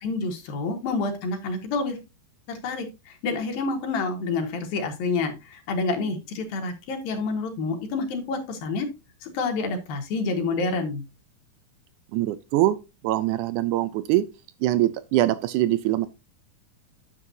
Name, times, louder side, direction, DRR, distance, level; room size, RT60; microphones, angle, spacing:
voice 1, 0.0-2.0 2.5-8.9 9.2-11.0, left 3 dB, 80° left, 3.4 m, -28 dB
voice 2, 12.1-12.8 13.0-14.3 14.6-16.1, right 14 dB, 85° right, 1.7 m, -23 dB
9.8 x 7.3 x 2.7 m
omnidirectional pair, 4.1 m